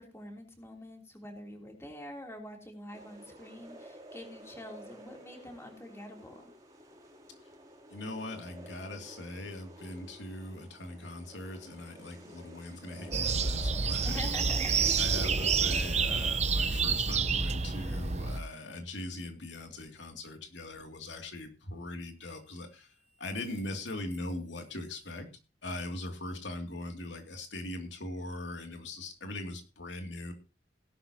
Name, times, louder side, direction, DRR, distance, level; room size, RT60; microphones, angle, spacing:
voice 1, 0.0-6.5 14.0-14.7, left 1 dB, 15° left, 1 dB, 3.2 m, -45 dB
sound 1, 2.9-16.4, right 1 dB, 20° right, 3.1 m, -51 dB
voice 2, 7.9-14.3 15.0-22.9 23.2-25.3 25.6-30.3, left 1 dB, 90° left, 4 dB, 2.6 m, -40 dB
sound 2, 13.1-18.4, right 5 dB, 40° right, 0.9 m, -28 dB
sound 3, 14.1-17.1 22.3-25.1, left 5 dB, 50° left, 4.5 m, -52 dB
18.0 x 11.5 x 2.9 m, 0.28 s
head